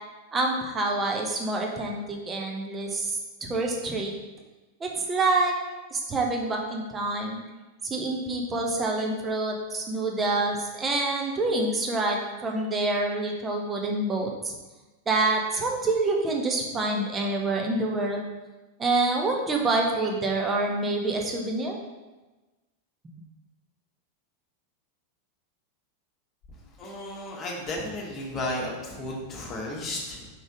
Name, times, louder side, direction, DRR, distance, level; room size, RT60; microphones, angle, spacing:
voice 1, 0.3-4.1 4.8-5.5 5.9-7.4 7.8-14.5 15.1-18.3 18.8-21.8, right 2 dB, 20° right, 0 dB, 0.9 m, -27 dB
voice 2, 26.8-30.3, left 1 dB, 25° left, -2 dB, 1.5 m, -33 dB
5.0 x 4.0 x 4.8 m, 1.2 s
figure-of-eight pair, 90°, 0 cm